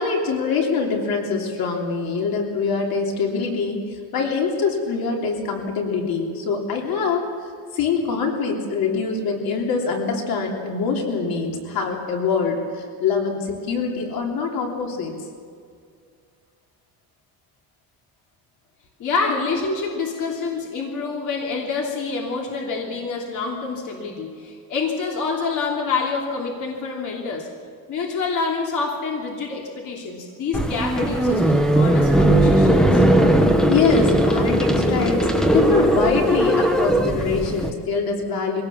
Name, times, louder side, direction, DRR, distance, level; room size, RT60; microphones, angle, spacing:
voice 1, 0.0-7.2 7.7-15.1 33.7-38.6, left 5 dB, 70° left, 1 dB, 3.3 m, -24 dB
voice 2, 19.0-27.5 27.9-33.0, left 4 dB, 55° left, -1 dB, 3.0 m, -27 dB
sound 1, 30.5-37.7, right 1 dB, ahead, 1.3 m, -18 dB
23.0 x 17.5 x 7.1 m, 2.2 s
cardioid pair, 170°, 37 cm